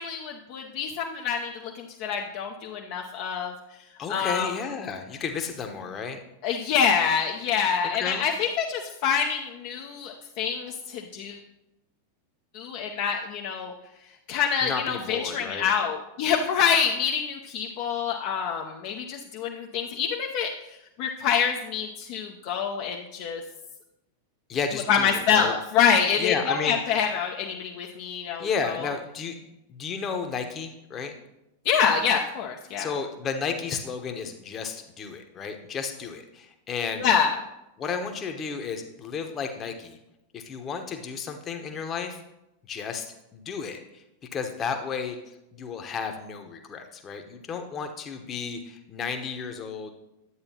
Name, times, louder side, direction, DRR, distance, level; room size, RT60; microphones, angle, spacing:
voice 1, 0.0-3.5 4.1-4.5 6.4-11.4 12.5-13.7 14.3-20.5 21.0-23.4 24.9-28.9 31.6-32.9 37.0-37.3, left 7 dB, 45° left, 0 dB, 0.7 m, -26 dB
voice 2, 4.0-6.2 7.9-8.3 14.6-15.7 24.5-25.5 26.2-26.9 28.4-29.4 29.7-31.1 32.8-37.1 37.8-40.0 40.3-42.2 42.6-44.0 44.3-49.9, left 6 dB, 25° left, 5 dB, 1.0 m, -33 dB
11.0 x 8.6 x 2.9 m, 0.91 s
figure-of-eight pair, 90°, 0 cm